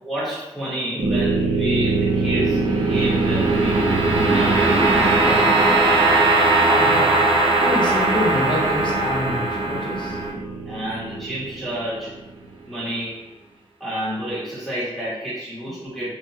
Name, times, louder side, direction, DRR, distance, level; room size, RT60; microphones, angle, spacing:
voice 1, 0.0-2.6 2.9-3.9 4.2-5.5 10.7-12.1 12.7-13.2 13.8-16.1, right 1 dB, ahead, -12 dB, 0.9 m, -29 dB
sound 1, 1.0-12.2, right 2 dB, 65° right, 0.5 m, -19 dB
voice 2, 6.6-10.2, left 2 dB, 60° left, -2 dB, 0.6 m, -27 dB
2.7 x 2.2 x 2.7 m, 0.95 s
wide cardioid pair, 165°, 10 cm